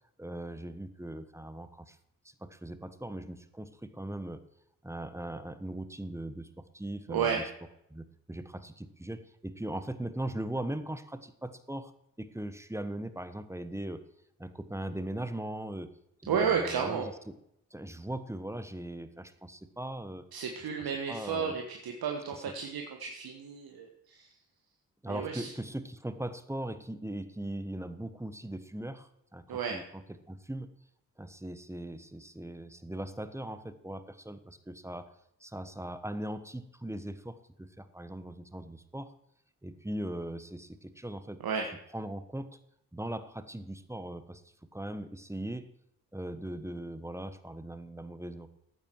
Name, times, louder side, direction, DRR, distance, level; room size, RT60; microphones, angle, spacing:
voice 1, 0.2-2.0 2.2-4.4 4.8-7.5 7.9-11.9 12.2-14.1 14.4-15.9 16.2-17.4 17.7-20.3 21.1-21.5 25.0-30.0 30.3-30.7 31.2-35.1 35.4-39.1 39.6-41.4 41.9-42.6 42.9-44.4 44.7-45.7 46.1-48.5, right 1 dB, 5° right, 12 dB, 1.2 m, -39 dB
voice 2, 7.1-7.5 16.3-17.1 20.3-24.3 25.1-25.5 29.5-29.8 41.4-41.7, right 6 dB, 70° right, 2 dB, 1.5 m, -32 dB
12.5 x 8.9 x 4.7 m, 0.77 s
supercardioid pair, 45°, 38 cm